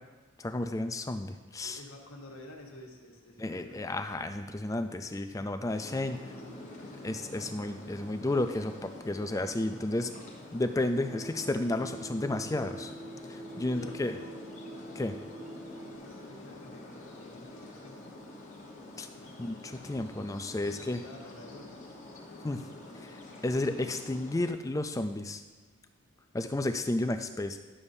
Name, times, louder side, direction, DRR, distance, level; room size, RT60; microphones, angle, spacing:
voice 1, 0.4-1.8 3.4-6.2 7.0-10.1 10.5-12.9 13.3-14.1 15.0-15.1 19.0-19.1 19.4-21.0 22.4-22.6 23.0-23.2 23.4-25.4 26.3-27.6, left 2 dB, 15° left, 8 dB, 0.3 m, -32 dB
voice 2, 1.6-4.3 5.1-5.6 6.0-6.9 13.7-14.4 14.9-15.5 16.0-18.1 18.7-19.3 20.6-22.8, left 1 dB, 70° left, 0 dB, 1.3 m, -51 dB
sound 1, 5.7-24.5, left 2 dB, 35° left, 1.1 m, -47 dB
sound 2, 11.0-16.0, right 2 dB, 30° right, 1.4 m, -46 dB
11.0 x 7.0 x 2.7 m, 1.3 s
head